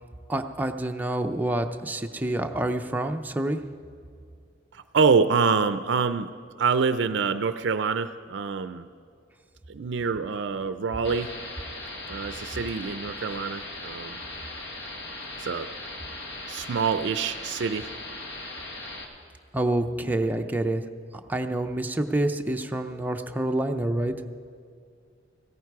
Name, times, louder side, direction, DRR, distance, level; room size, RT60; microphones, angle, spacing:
voice 1, 0.3-3.6 19.5-20.8 21.3-24.1, right 1 dB, 10° right, 5 dB, 0.6 m, -27 dB
voice 2, 4.7-6.3 6.6-8.9 9.7-11.4 12.1-14.2 15.4-15.7 16.5-17.9, right 5 dB, 65° right, 12 dB, 0.4 m, -26 dB
sound 1, 11.0-19.0, left 2 dB, 65° left, 1.7 m, -38 dB
16.5 x 14.0 x 4.7 m, 2.3 s
head